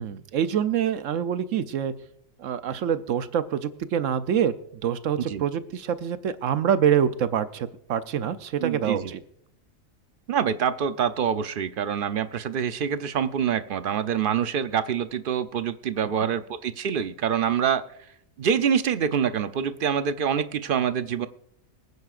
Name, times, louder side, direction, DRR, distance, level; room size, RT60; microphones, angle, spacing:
voice 1, 0.0-1.9 2.4-4.5 4.8-9.2, right 8 dB, 70° right, 12 dB, 1.0 m, -25 dB
voice 2, 8.6-9.1 10.3-17.8 18.4-21.3, right 8 dB, 55° right, 12 dB, 0.6 m, -26 dB
23.0 x 9.5 x 2.5 m, 0.70 s
omnidirectional pair, 1.4 m